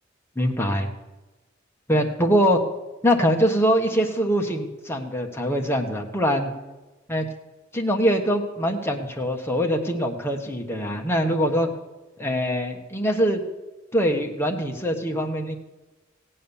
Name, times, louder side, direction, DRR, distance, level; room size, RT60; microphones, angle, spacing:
voice 1, 0.3-0.9 1.9-2.6 3.0-6.5 7.1-7.2 7.7-11.7 12.2-13.4 13.9-15.6, equal, 10° left, 2 dB, 1.3 m, -23 dB
16.5 x 8.8 x 7.1 m, 1.1 s
head